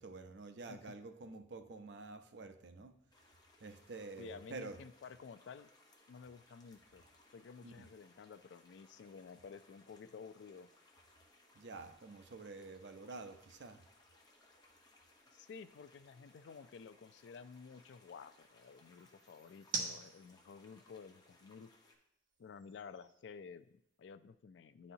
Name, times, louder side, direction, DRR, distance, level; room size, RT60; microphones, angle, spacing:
voice 1, 0.0-3.0 3.6-4.8 7.6-7.9 11.6-13.8, right 3 dB, 80° right, 8 dB, 0.6 m, -49 dB
sound 1, 3.1-22.0, left 2 dB, 25° left, 0.8 m, -66 dB
voice 2, 4.2-5.7 6.1-7.1 7.3-10.7 15.3-21.7 22.4-24.9, left 5 dB, 80° left, 13 dB, 0.3 m, -53 dB
sound 2, 9.9-24.2, right 4 dB, 50° right, 1.0 m, -52 dB
10.0 x 4.2 x 2.7 m, 0.75 s
head